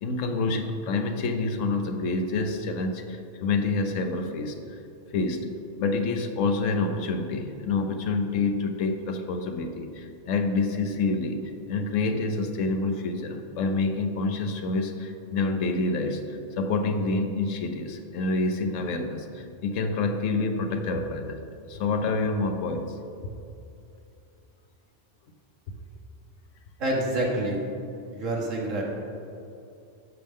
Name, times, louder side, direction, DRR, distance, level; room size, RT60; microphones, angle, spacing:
voice 1, 0.0-4.6 5.1-5.5 5.8-21.4 21.7-22.9, left 3 dB, 85° left, 6 dB, 1.1 m, -27 dB
voice 2, 26.8-27.6 28.1-28.8, right 1 dB, 85° right, -2 dB, 1.8 m, -27 dB
11.0 x 6.5 x 3.5 m, 2.7 s
omnidirectional pair, 1.3 m